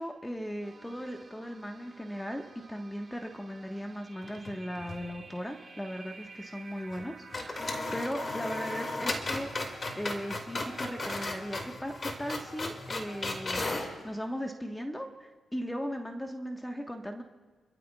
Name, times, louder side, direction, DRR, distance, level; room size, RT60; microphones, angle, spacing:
voice 1, 0.0-17.2, equal, 10° left, 3 dB, 1.4 m, -38 dB
sound 1, 0.6-11.5, right 3 dB, 35° right, 3.2 m, -52 dB
sound 2, 4.2-5.0 5.3-5.4 6.9-7.1 7.3-13.9, left 2 dB, 40° left, 2.4 m, -35 dB
29.5 x 13.0 x 2.4 m, 1.4 s
cardioid pair, 70°, 0 cm